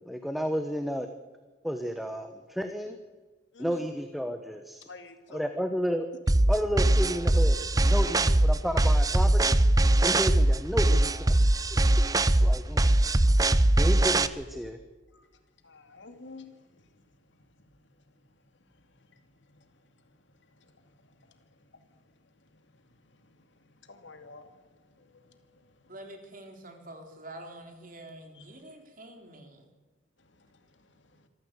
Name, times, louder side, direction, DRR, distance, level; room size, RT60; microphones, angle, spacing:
voice 1, 0.1-1.1 1.6-3.0 3.6-4.8 5.3-6.1 6.5-9.6 10.0-11.8 12.3-13.0 13.8-14.8, equal, ahead, 7 dB, 1.1 m, -32 dB
voice 2, 3.5-3.9 4.9-5.6 15.1-15.2 15.6-16.6 23.9-24.5 28.3-28.4, left 3 dB, 65° left, 7 dB, 2.5 m, -47 dB
sound 1, 6.3-14.3, right 1 dB, 20° right, 0.7 m, -21 dB
voice 3, 25.9-29.7, right 1 dB, 45° right, 4 dB, 3.7 m, -46 dB
25.5 x 14.0 x 8.2 m, 1.3 s
head